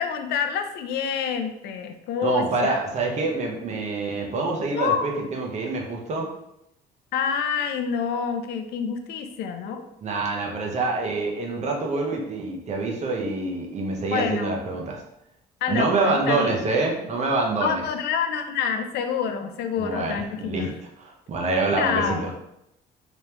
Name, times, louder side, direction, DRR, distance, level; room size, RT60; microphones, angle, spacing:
voice 1, 0.0-2.8 4.7-5.2 7.1-9.8 14.1-14.6 15.6-16.6 17.6-20.8 21.8-22.3, left 7 dB, 75° left, 7 dB, 0.5 m, -27 dB
voice 2, 2.2-6.3 10.0-15.0 15.7-17.8 19.8-20.7 21.3-22.3, right 3 dB, 45° right, 0 dB, 0.9 m, -26 dB
3.4 x 3.0 x 2.9 m, 0.81 s
cardioid pair, 110°, 17 cm